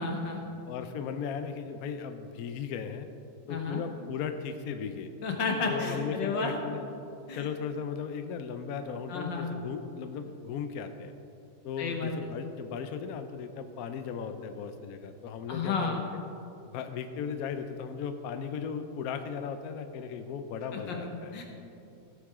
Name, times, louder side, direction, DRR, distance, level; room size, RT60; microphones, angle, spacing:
voice 1, 0.0-0.5 3.5-3.8 5.2-6.5 7.3-7.5 9.1-9.5 11.8-12.1 15.5-16.0 20.7-21.0 21.3-21.4, left 4 dB, 85° left, 1 dB, 2.0 m, -32 dB
voice 2, 0.7-3.1 3.5-5.1 5.7-6.9 7.3-11.1 11.6-16.2 16.7-21.3, left 6 dB, 65° left, 8 dB, 1.0 m, -36 dB
16.0 x 8.0 x 3.7 m, 2.7 s
omnidirectional pair, 1.9 m